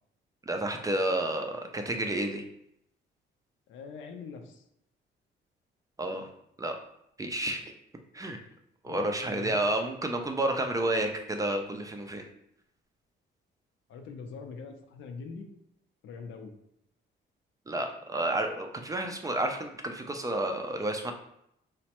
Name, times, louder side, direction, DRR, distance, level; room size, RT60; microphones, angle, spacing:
voice 1, 0.5-2.4 6.0-6.3 6.6-6.8 7.2-7.7 8.1-8.4 8.8-12.3 17.7-21.1, right 1 dB, 15° right, 4 dB, 0.4 m, -30 dB
voice 2, 3.7-4.6 8.9-9.6 13.9-15.5 16.0-16.5, left 5 dB, 75° left, 5 dB, 0.5 m, -43 dB
3.1 x 2.1 x 2.9 m, 0.76 s
cardioid pair, 90°, 20 cm